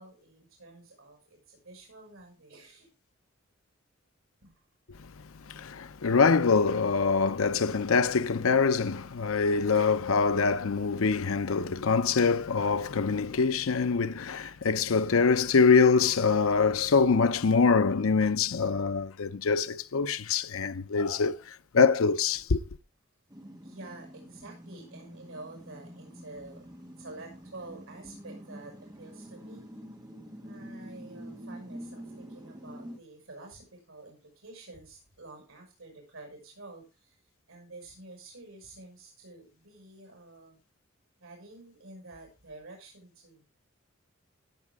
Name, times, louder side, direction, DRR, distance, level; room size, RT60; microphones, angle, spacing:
voice 1, 0.0-2.9 4.4-4.5 23.6-29.7 30.4-37.2 37.5-40.6 41.2-43.4, right 2 dB, 80° right, 5.9 m, -49 dB
voice 2, 5.5-21.4 21.7-22.6, left 5 dB, 85° left, 0.6 m, -24 dB
sound 1, 23.3-33.0, equal, 20° right, 1.7 m, -46 dB
18.0 x 7.5 x 3.5 m
head